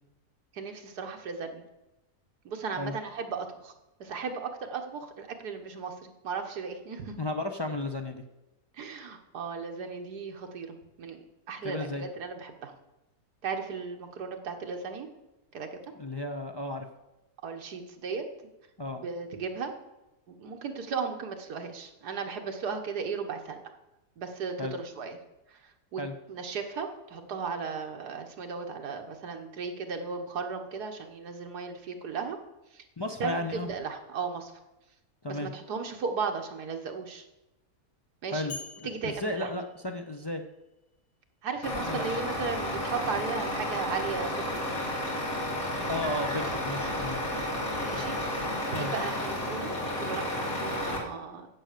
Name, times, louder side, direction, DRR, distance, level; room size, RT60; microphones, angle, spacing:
voice 1, 0.5-1.6 2.5-3.7 4.0-7.2 8.7-12.7 13.4-15.1 15.5-15.8 17.4-18.3 19.0-19.7 20.3-23.6 24.2-25.2 25.5-26.0 26.3-32.4 32.7-32.8 33.2-34.5 35.3-37.3 38.2-38.5 38.8-39.5 41.4-44.7 47.9-51.5, right 5 dB, 80° right, 4 dB, 1.8 m, -36 dB
voice 2, 7.2-8.2 11.6-12.0 16.0-16.9 18.8-19.0 24.6-24.8 26.0-26.1 33.0-33.7 35.2-35.5 38.3-40.4 41.8-42.2 45.9-47.2 48.7-48.9, left 1 dB, 35° left, 4 dB, 0.4 m, -34 dB
sound 1, 38.5-40.6, left 4 dB, 80° left, 3.1 m, -46 dB
Truck, 41.6-51.0, left 1 dB, 60° left, 2.5 m, -32 dB
9.9 x 7.8 x 6.7 m, 0.98 s
omnidirectional pair, 1.7 m